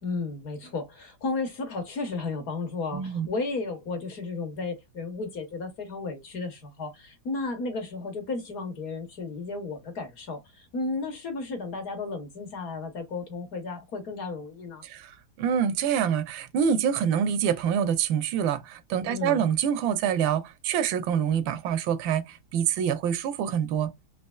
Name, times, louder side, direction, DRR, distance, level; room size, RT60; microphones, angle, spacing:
voice 1, 0.0-14.8 19.1-19.4, left 3 dB, 55° left, 1.2 m, -33 dB
voice 2, 2.9-3.3 14.8-23.9, right 8 dB, 80° right, 1.3 m, -26 dB
4.2 x 2.8 x 2.2 m
omnidirectional pair, 2.1 m